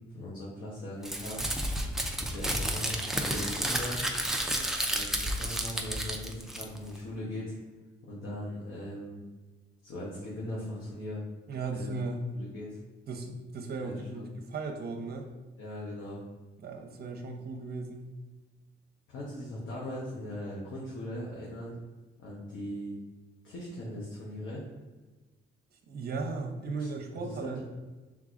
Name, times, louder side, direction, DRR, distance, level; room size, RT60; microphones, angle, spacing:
voice 1, 0.1-1.5 2.1-4.1 4.9-7.5 8.0-9.2 9.8-11.2 11.7-11.9 12.3-12.8 13.8-14.3 15.6-16.2 19.1-21.7 22.2-23.0 23.4-24.6 26.8-27.6, left 1 dB, 90° left, -5 dB, 1.0 m, -39 dB
Crumpling crinkling, 1.0-7.0, right 1 dB, ahead, 0.5 m, -31 dB
voice 2, 11.5-12.3 13.1-15.3 16.6-18.1 25.9-27.6, right 3 dB, 50° right, 4 dB, 0.8 m, -36 dB
4.6 x 3.6 x 2.5 m, 1.2 s
cardioid pair, 90°, 20 cm